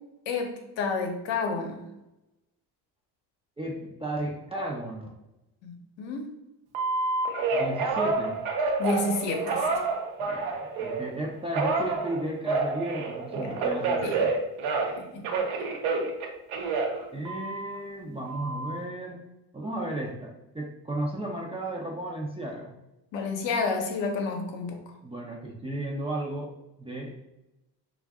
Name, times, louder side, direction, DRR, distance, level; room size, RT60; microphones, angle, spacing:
voice 1, 0.3-1.8 5.6-5.7 6.0-6.3 8.8-9.7 13.3-13.5 14.0-14.1 15.1-15.2 23.1-24.9, left 3 dB, 60° left, 3 dB, 0.8 m, -30 dB
voice 2, 3.6-5.1 7.5-8.4 10.2-14.3 17.1-19.2 19.5-22.8 25.0-26.5 26.8-27.1, right 1 dB, 10° right, -3 dB, 0.4 m, -34 dB
Telephone, 6.7-11.1 11.5-15.0 15.2-17.8 18.3-18.8, right 3 dB, 75° right, 0.7 m, -28 dB
2.6 x 2.4 x 3.4 m, 0.94 s
hypercardioid pair, 60°, 50 cm